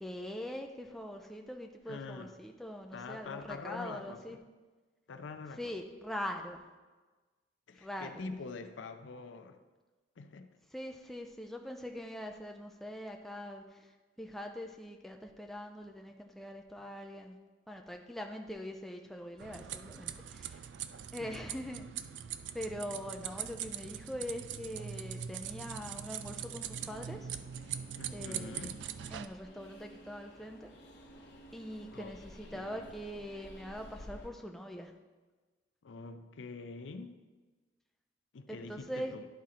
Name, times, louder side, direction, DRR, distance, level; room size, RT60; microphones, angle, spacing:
voice 1, 0.0-4.4 5.6-6.6 7.8-8.3 10.7-13.8 14.2-17.4 17.7-20.6 21.1-21.9 22.5-27.3 28.1-28.8 29.1-30.7 31.5-34.9 38.5-39.1, equal, ahead, 2 dB, 0.4 m, -42 dB
voice 2, 1.9-2.4 2.9-4.4 5.1-5.8 7.7-9.6 10.2-10.5 21.2-21.4 28.0-28.8 31.9-32.2 32.5-32.9 35.8-37.2 38.3-39.3, left 4 dB, 85° left, 9 dB, 0.5 m, -45 dB
sound 1, 19.4-29.3, right 9 dB, 70° right, 0.3 m, -42 dB
Train, 26.2-34.3, equal, 65° left, 1.1 m, -54 dB
11.0 x 3.7 x 4.2 m, 1.3 s
head